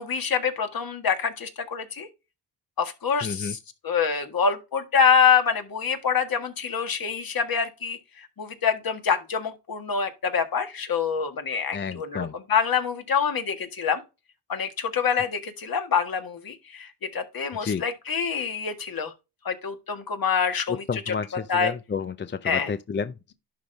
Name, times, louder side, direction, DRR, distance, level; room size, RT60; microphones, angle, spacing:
voice 1, 0.0-2.1 2.8-3.6 3.8-8.0 8.4-14.0 14.5-19.1 19.4-21.1 21.5-21.7 22.4-22.7, left 6 dB, 50° left, 1.8 m, -26 dB
voice 2, 3.2-3.5 11.7-12.3 17.6-17.8 20.9-23.3, left 5 dB, 25° left, 0.5 m, -31 dB
11.5 x 3.9 x 3.4 m
supercardioid pair, 55°, 44 cm